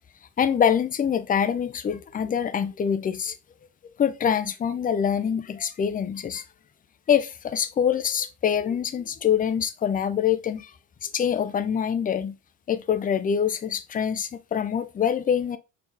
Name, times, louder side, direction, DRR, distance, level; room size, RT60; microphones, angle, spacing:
voice 1, 0.4-3.4 4.0-6.4 7.1-10.7 11.0-12.4 12.7-15.6, left 8 dB, 20° left, 0.4 m, -25 dB
4.4 x 2.9 x 3.4 m
hypercardioid pair, 70°, 49 cm